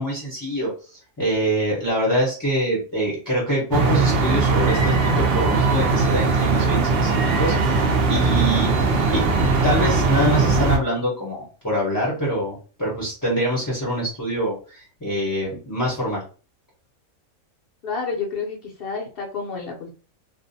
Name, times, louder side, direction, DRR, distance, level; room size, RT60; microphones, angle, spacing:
voice 1, 0.0-7.8 8.1-9.3 9.6-16.2, right 1 dB, 20° left, -5 dB, 0.6 m, -25 dB
sound 1, 3.7-10.8, right 3 dB, 65° right, 0.6 m, -20 dB
voice 2, 17.8-19.9, left 4 dB, 55° left, -1 dB, 0.7 m, -29 dB
2.5 x 2.1 x 2.6 m, 0.37 s
omnidirectional pair, 1.5 m